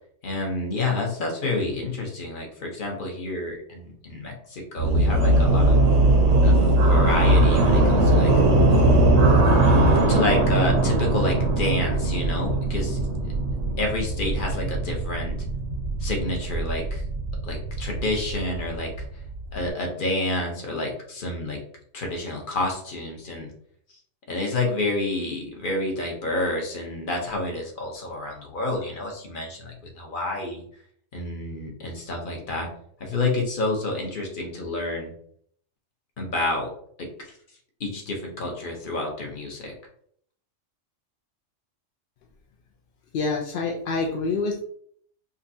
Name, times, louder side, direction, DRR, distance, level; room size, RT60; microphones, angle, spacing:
voice 1, 0.2-5.8 6.4-8.3 10.1-13.0 13.8-15.4 16.0-17.0 17.4-19.0 19.5-21.6 21.9-23.5 24.3-30.6 31.1-32.7 33.0-35.1 36.2-36.7 37.0-37.3 37.8-39.7, left 2 dB, 45° left, 1 dB, 1.0 m, -29 dB
sound 1, 4.8-19.7, right 2 dB, 80° right, 1.1 m, -20 dB
voice 2, 43.1-44.6, left 3 dB, 60° left, 0 dB, 0.6 m, -26 dB
5.2 x 2.2 x 2.6 m, 0.63 s
omnidirectional pair, 1.3 m